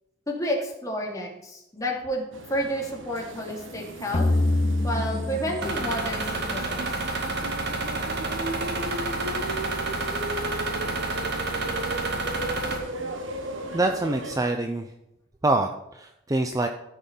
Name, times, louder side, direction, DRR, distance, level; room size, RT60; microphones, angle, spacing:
voice 1, 0.3-4.3 4.8-6.9, equal, 15° left, -1 dB, 2.5 m, -30 dB
sound 1, 2.3-14.5, right 1 dB, 75° right, 1.3 m, -36 dB
sound 2, 4.1-7.4, left 2 dB, 35° left, 0.7 m, -26 dB
sound 3, 5.6-12.8, right 2 dB, 60° right, 2.1 m, -29 dB
voice 2, 13.7-14.8 15.4-16.7, right 2 dB, 20° right, 5 dB, 0.6 m, -25 dB
14.0 x 6.2 x 5.4 m, 0.87 s
head